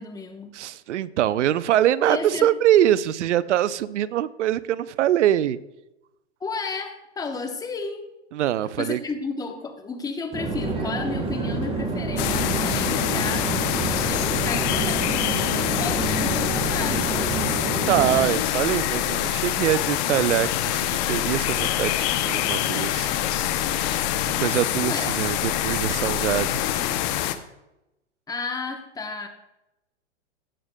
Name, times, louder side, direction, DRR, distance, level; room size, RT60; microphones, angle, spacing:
voice 1, 0.0-0.6 2.1-2.5 6.4-8.1 8.8-13.5 14.0-17.3 24.8-25.1 28.3-29.3, left 4 dB, 10° left, 6 dB, 0.9 m, -33 dB
voice 2, 0.5-5.6 8.3-9.0 17.8-23.1 24.4-26.6, right 12 dB, 80° right, 18 dB, 0.5 m, -23 dB
Conversation / Chatter / Fixed-wing aircraft airplane, 10.3-18.3, right 3 dB, 15° right, 1.3 m, -28 dB
sound 1, 12.2-27.4, left 12 dB, 40° left, 0.7 m, -25 dB
16.5 x 6.4 x 2.2 m, 0.92 s
hypercardioid pair, 125°, 35 cm